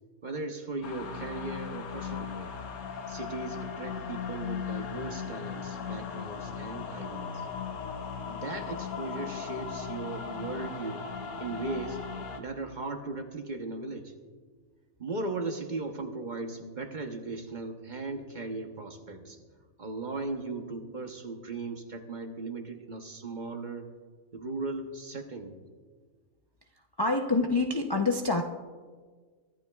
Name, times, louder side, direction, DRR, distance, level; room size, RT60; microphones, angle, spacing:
voice 1, 0.2-2.5 3.1-7.4 8.3-11.1 11.4-12.0 12.4-14.1 15.0-19.4 19.8-23.9 24.3-25.5, right 3 dB, 40° right, 4 dB, 1.0 m, -37 dB
sound 1, 0.8-12.4, left 6 dB, 90° left, 1.4 m, -38 dB
voice 2, 27.0-28.4, left 3 dB, 35° left, 2 dB, 0.4 m, -26 dB
23.5 x 12.0 x 2.3 m, 1.5 s
omnidirectional pair, 1.5 m